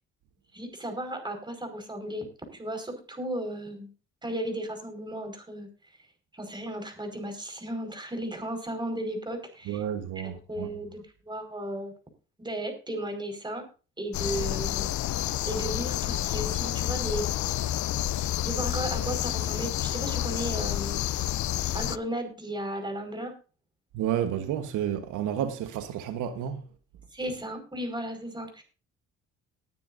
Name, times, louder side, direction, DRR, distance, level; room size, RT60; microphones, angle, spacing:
voice 1, 0.5-2.3 2.5-3.9 4.2-5.7 6.3-9.8 10.5-11.9 12.4-13.6 14.0-15.0 15.5-17.3 18.4-21.0 21.7-23.3 27.1-28.6, right 1 dB, 15° right, 5.2 m, -35 dB
voice 2, 9.6-10.7 23.9-26.7, right 10 dB, 90° right, 1.4 m, -31 dB
sound 1, 14.1-22.0, left 13 dB, 70° left, 0.6 m, -29 dB
20.0 x 10.0 x 2.7 m
cardioid pair, 90°, 30 cm